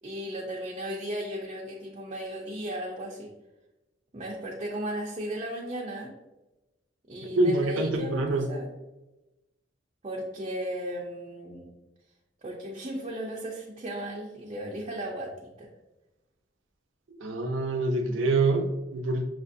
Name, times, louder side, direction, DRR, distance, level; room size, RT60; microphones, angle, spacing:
voice 1, 0.0-3.3 4.1-6.1 7.1-8.7 10.0-11.8 12.4-15.7, right 1 dB, 30° right, -3 dB, 0.5 m, -35 dB
voice 2, 7.2-8.5 17.1-19.2, right 2 dB, 85° right, 4 dB, 0.6 m, -26 dB
6.1 x 2.5 x 2.6 m, 1.0 s
head